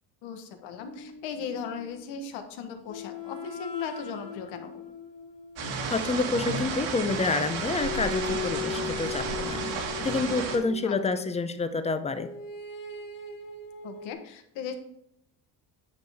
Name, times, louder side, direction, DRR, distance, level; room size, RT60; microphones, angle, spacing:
voice 1, 0.2-4.9 10.8-10.9 13.8-14.7, left 6 dB, 85° left, 6 dB, 1.3 m, -37 dB
sound 1, 0.8-2.3 2.9-6.8 7.8-11.4 12.2-14.1, left 6 dB, 45° left, 1.2 m, -39 dB
sound 2, 5.6-10.6, right 5 dB, 80° right, 2.0 m, -32 dB
voice 2, 5.9-9.6 10.0-12.3, left 3 dB, 15° left, 10 dB, 0.5 m, -28 dB
9.6 x 6.2 x 3.5 m, 0.78 s
cardioid pair, 130°, 44 cm